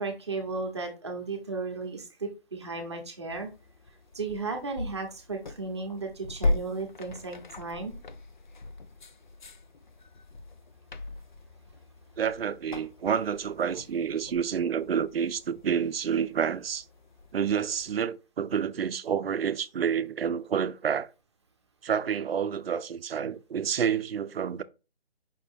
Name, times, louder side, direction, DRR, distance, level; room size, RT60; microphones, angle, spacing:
voice 1, 0.0-3.5 4.1-7.9, right 3 dB, 25° right, 0.8 m, -35 dB
sound 1, 3.3-17.9, left 2 dB, 50° left, 0.4 m, -39 dB
voice 2, 12.2-16.8 17.3-21.1 21.8-24.6, right 7 dB, 65° right, 0.5 m, -29 dB
5.3 x 2.8 x 3.4 m
hypercardioid pair, 175°, 32 cm